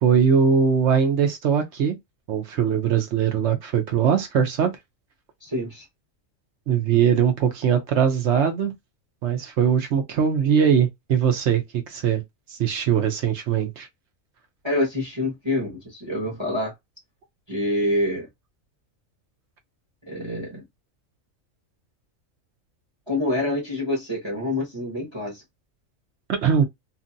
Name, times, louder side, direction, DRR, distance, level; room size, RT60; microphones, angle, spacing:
voice 1, 0.0-2.0 2.3-4.7 6.7-8.7 9.2-12.2 12.5-13.9 26.3-26.6, right 7 dB, 60° right, 0.9 m, -21 dB
voice 2, 5.4-5.9 14.6-16.7 17.5-18.3 20.0-20.6 23.1-25.4, left 1 dB, 25° right, 0.8 m, -26 dB
2.7 x 2.5 x 2.5 m
omnidirectional pair, 1.4 m